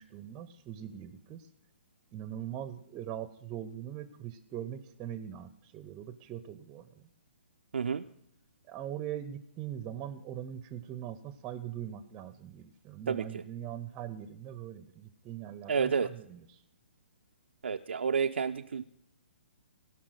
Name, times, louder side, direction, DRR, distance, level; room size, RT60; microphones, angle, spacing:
voice 1, 0.0-1.5 2.1-7.1 8.7-16.6, right 10 dB, 20° right, 13 dB, 0.6 m, -41 dB
voice 2, 7.7-8.0 13.1-13.4 15.7-16.1 17.6-18.8, right 6 dB, 75° right, 7 dB, 0.4 m, -30 dB
17.0 x 5.7 x 6.3 m, 0.76 s
figure-of-eight pair, 130°, 6 cm